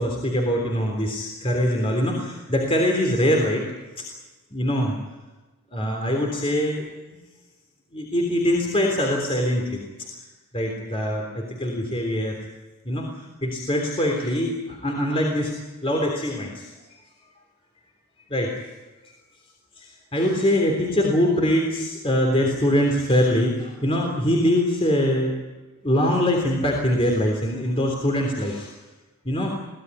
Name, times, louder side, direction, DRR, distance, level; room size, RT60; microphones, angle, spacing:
voice 1, 0.0-3.7 4.0-4.1 4.5-5.0 5.7-7.2 7.9-10.2 10.5-12.4 12.9-16.7 18.3-18.5 19.1-19.2 19.8-25.3 25.8-28.7 29.3-29.5, equal, 25° left, 1 dB, 3.5 m, -23 dB
24.0 x 17.0 x 9.8 m, 1.2 s
head